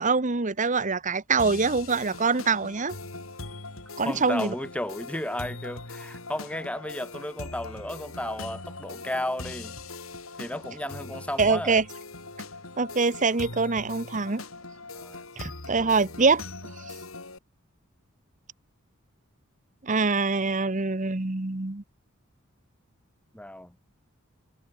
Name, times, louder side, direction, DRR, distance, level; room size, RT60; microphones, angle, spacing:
voice 1, 0.0-2.9 4.0-4.5 11.4-11.8 12.8-14.4 15.4-16.4 19.8-21.8, right 4 dB, 40° right, 1.1 m, -24 dB
sound 1, 1.4-17.4, left 3 dB, 90° left, 6.2 m, -41 dB
voice 2, 4.0-9.8 10.4-11.8 14.9-15.2 23.3-23.7, left 1 dB, 5° left, 2.1 m, -34 dB
head